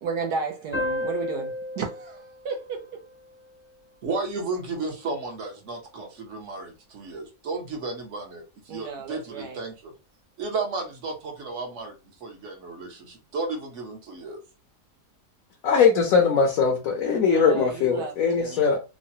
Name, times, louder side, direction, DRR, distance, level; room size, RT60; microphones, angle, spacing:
voice 1, 0.0-3.0 8.7-9.6 17.1-18.7, right 5 dB, 75° right, 1.2 m, -33 dB
sound 1, 0.7-3.9, left 1 dB, 10° left, 0.6 m, -33 dB
voice 2, 4.0-9.9 10.4-14.4, right 3 dB, 55° right, 1.0 m, -33 dB
voice 3, 15.6-18.8, left 5 dB, 65° left, 0.9 m, -21 dB
3.2 x 2.1 x 2.7 m
omnidirectional pair, 1.8 m